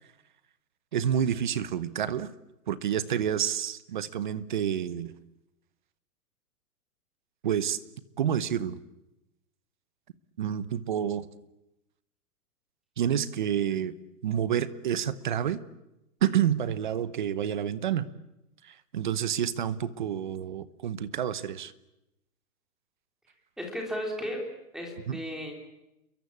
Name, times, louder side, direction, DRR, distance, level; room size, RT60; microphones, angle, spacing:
voice 1, 0.9-2.3 2.7-5.1 7.4-7.8 8.2-8.8 10.4-11.3 13.0-13.9 14.2-15.6 16.2-18.1 18.6-21.7 25.1-25.2, right 9 dB, 30° right, 16 dB, 0.9 m, -29 dB
voice 2, 23.6-24.4 24.7-25.5, equal, ahead, 1 dB, 3.3 m, -34 dB
29.0 x 23.0 x 8.6 m, 0.90 s
hypercardioid pair, 175°, 47 cm